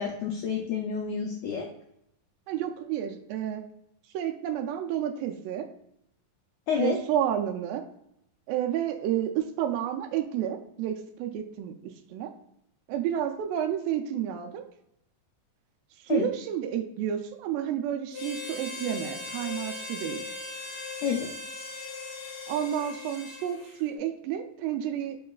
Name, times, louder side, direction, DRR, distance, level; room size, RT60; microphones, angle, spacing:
voice 1, 0.0-1.7 6.7-7.0 16.1-16.3 21.0-21.3, left 7 dB, 90° left, 1 dB, 1.7 m, -29 dB
voice 2, 2.5-3.7 4.1-5.7 6.8-7.8 8.5-12.3 12.9-14.6 16.0-20.3 22.5-25.2, right 10 dB, 80° right, 4 dB, 2.2 m, -30 dB
Harmonica, 18.1-23.8, left 3 dB, 70° left, 1.6 m, -39 dB
6.5 x 3.0 x 2.3 m, 0.76 s
omnidirectional pair, 4.1 m